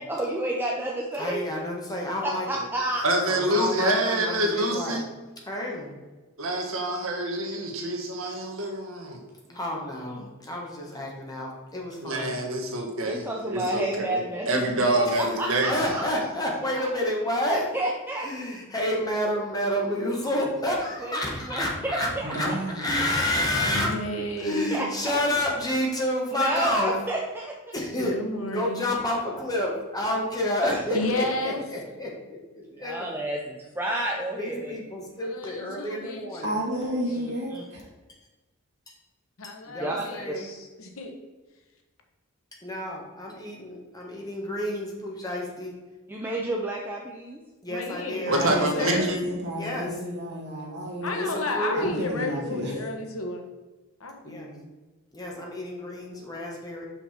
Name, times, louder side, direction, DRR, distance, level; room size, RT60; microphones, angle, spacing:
voice 1, 0.1-1.4 2.2-3.0 9.5-9.6 10.0-10.3 13.0-14.6 15.2-16.0 16.7-17.1 17.5-18.3 20.7-22.6 24.2-25.2 26.3-27.7 29.4-29.5 30.6-30.8 31.6-31.7 32.7-34.8 36.8-37.6 39.8-40.4 46.1-47.4, right 1 dB, 10° right, -2 dB, 0.6 m, -31 dB
voice 2, 1.2-2.6 3.3-5.0 5.4-5.9 9.5-12.4 15.1-15.2 15.7-17.7 18.2-22.1 22.4-22.5 22.7-24.0 24.4-26.9 27.7-28.2 28.5-33.0 34.3-36.6 39.4-40.5 42.6-45.7 47.6-49.0 49.6-49.9 51.1-51.8 54.2-54.5 55.1-56.9, left 1 dB, 20° left, -2 dB, 1.5 m, -29 dB
voice 3, 3.0-5.1 6.4-9.2 12.0-14.2 14.5-15.7 48.3-49.2, right 1 dB, 70° right, 2 dB, 1.3 m, -26 dB
voice 4, 22.2-23.1 36.4-37.9 48.3-51.1 51.7-52.8, equal, 55° right, -2 dB, 2.0 m, -31 dB
voice 5, 23.6-24.9 27.9-28.8 30.9-31.6 35.2-36.4 39.4-41.1 47.7-49.2 51.0-53.5 54.0-54.7, left 2 dB, 80° left, 3 dB, 1.2 m, -32 dB
6.0 x 5.7 x 4.3 m, 1.2 s
head